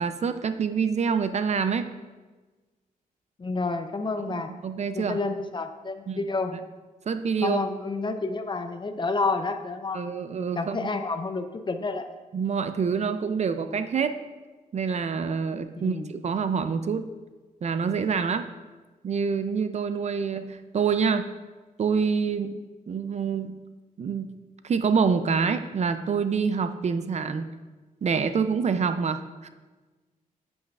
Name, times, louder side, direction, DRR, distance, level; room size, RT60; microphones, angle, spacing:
voice 1, 0.0-1.9 4.3-5.2 6.1-6.2 7.1-7.6 9.9-10.9 12.3-14.2 14.7-17.1 17.6-18.5 19.0-21.3 21.8-23.6 24.0-24.3 24.6-27.5 28.0-29.5, right 6 dB, 50° right, 10 dB, 0.4 m, -26 dB
voice 2, 3.4-4.5 4.9-6.5 7.4-10.0 10.5-12.1 15.8-16.1, left 3 dB, 30° left, 8 dB, 0.5 m, -29 dB
8.5 x 7.9 x 2.4 m, 1.3 s
wide cardioid pair, 110°, 15 cm